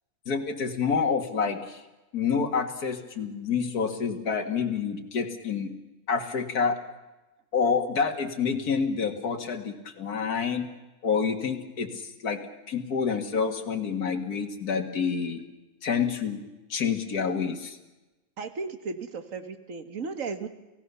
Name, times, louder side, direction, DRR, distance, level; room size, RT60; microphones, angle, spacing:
voice 1, 0.3-1.8 2.1-5.7 6.1-6.8 7.5-10.7 11.0-12.4 12.7-15.4 15.8-16.4 16.7-17.8, left 6 dB, 80° left, 4 dB, 2.4 m, -28 dB
voice 2, 18.4-20.5, right 4 dB, 60° right, 9 dB, 2.0 m, -35 dB
29.5 x 17.0 x 6.9 m, 1.0 s
omnidirectional pair, 1.6 m